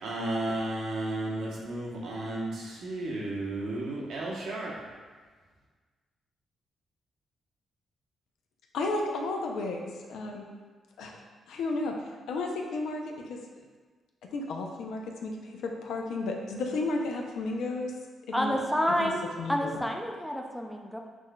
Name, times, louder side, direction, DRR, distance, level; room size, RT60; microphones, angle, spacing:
voice 1, 0.0-4.7, right 1 dB, 80° right, -4 dB, 0.9 m, -33 dB
voice 2, 8.7-10.5 11.0-11.2 11.5-11.9 12.3-13.6 14.3-17.9 18.3-18.6 19.0-19.1 19.4-19.7, left 2 dB, 80° left, 2 dB, 0.5 m, -33 dB
voice 3, 18.3-19.2 19.5-21.0, equal, 5° left, 2 dB, 0.5 m, -29 dB
6.1 x 2.5 x 2.2 m, 1.4 s
cardioid pair, 65°, 0 cm